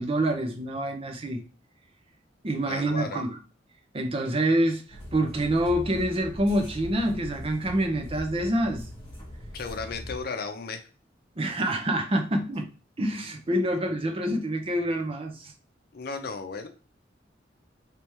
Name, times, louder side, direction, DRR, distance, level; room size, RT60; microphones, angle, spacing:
voice 1, 0.0-1.4 2.4-3.4 3.9-8.9 11.4-12.7 13.0-15.5, right 1 dB, 30° right, 5 dB, 0.6 m, -26 dB
voice 2, 2.6-3.2 9.5-10.8 15.9-16.7, left 4 dB, 55° left, 6 dB, 0.6 m, -35 dB
sound 1, 4.9-10.2, equal, 30° left, 1.5 m, -40 dB
3.3 x 3.3 x 3.0 m, 0.36 s
head